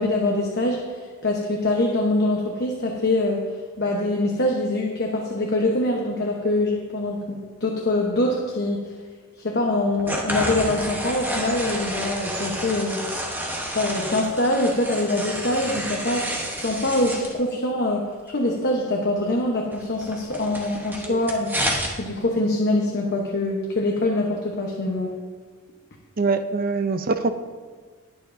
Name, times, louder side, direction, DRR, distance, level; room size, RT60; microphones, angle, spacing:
voice 1, 0.0-3.5 3.8-8.9 9.4-13.0 13.7-21.5 22.0-25.1, left 1 dB, 50° left, 0 dB, 1.0 m, -24 dB
sound 1, 10.0-17.3 19.7-21.9, equal, 10° right, 1.0 m, -30 dB
voice 2, 26.2-27.3, right 4 dB, 40° right, 9 dB, 0.5 m, -23 dB
20.0 x 6.9 x 2.7 m, 1.5 s
head